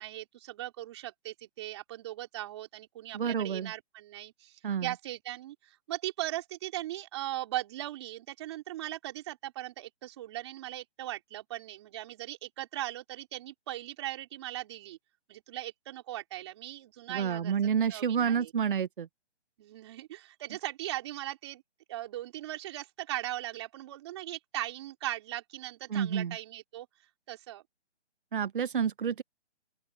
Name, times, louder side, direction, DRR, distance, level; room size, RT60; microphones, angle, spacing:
voice 1, 0.0-15.0 15.3-18.5 19.6-21.6 21.9-26.9 27.3-27.6, right 14 dB, 25° right, 4.3 m, -39 dB
voice 2, 3.1-3.7 4.6-4.9 17.1-19.1 25.9-26.4 28.3-29.2, right 7 dB, 50° right, 0.7 m, -29 dB
open air
hypercardioid pair, 170°, 35 cm